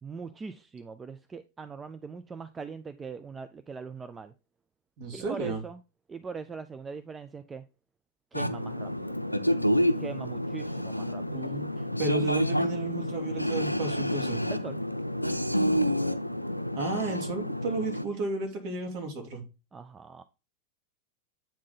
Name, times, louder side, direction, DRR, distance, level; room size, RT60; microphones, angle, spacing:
voice 1, 0.0-4.3 5.1-5.8 6.1-7.7 8.3-9.2 10.0-11.5 14.4-14.8 19.7-20.2, right 5 dB, 15° right, 0.4 m, -41 dB
voice 2, 5.0-5.6 11.3-11.7 12.0-14.4 16.7-19.4, right 3 dB, 45° right, 2.0 m, -33 dB
sound 1, 8.3-18.0, equal, 90° left, 0.5 m, -29 dB
8.6 x 3.7 x 3.9 m
figure-of-eight pair, 90°, 0 cm